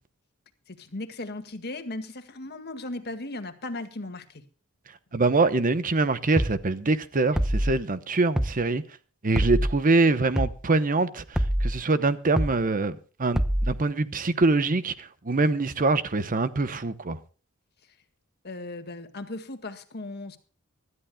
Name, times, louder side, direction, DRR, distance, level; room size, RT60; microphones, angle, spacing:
voice 1, 0.7-4.4 18.4-20.4, left 2 dB, 50° left, 1.8 m, -37 dB
voice 2, 5.1-8.8 9.2-17.2, right 3 dB, 40° right, 0.9 m, -24 dB
sound 1, 6.4-6.6 7.4-7.7 8.4-8.6 9.4-9.7 10.4-10.6 11.4-11.7 12.4-12.6 13.4-13.7, equal, 5° right, 0.7 m, -25 dB
25.0 x 13.0 x 2.3 m
head